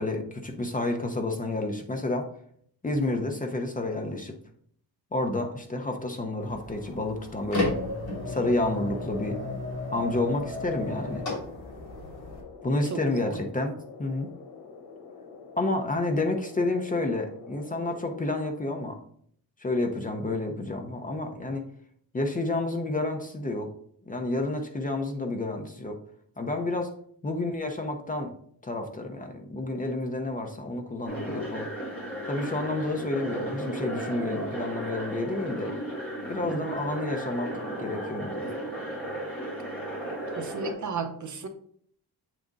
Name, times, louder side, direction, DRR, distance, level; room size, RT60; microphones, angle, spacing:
voice 1, 0.0-2.3 2.8-4.3 5.1-7.8 8.3-9.5 9.9-11.3 12.6-14.3 15.6-19.0 19.6-21.6 22.1-23.7 24.1-26.0 26.4-26.9 27.2-28.3 28.6-31.7 32.3-35.7 36.3-37.5 37.8-38.5, left 2 dB, 20° left, 3 dB, 0.6 m, -30 dB
sound 1, 6.4-12.4, left 2 dB, 45° left, 2.6 m, -34 dB
sound 2, 10.8-18.4, left 5 dB, 85° left, 1.0 m, -47 dB
voice 2, 12.9-13.4 36.4-36.7 40.4-41.5, right 5 dB, 50° right, 7 dB, 0.7 m, -34 dB
sound 3, 31.1-40.7, right 1 dB, 5° left, 2.0 m, -35 dB
7.5 x 3.6 x 3.9 m, 0.63 s
wide cardioid pair, 170°, 39 cm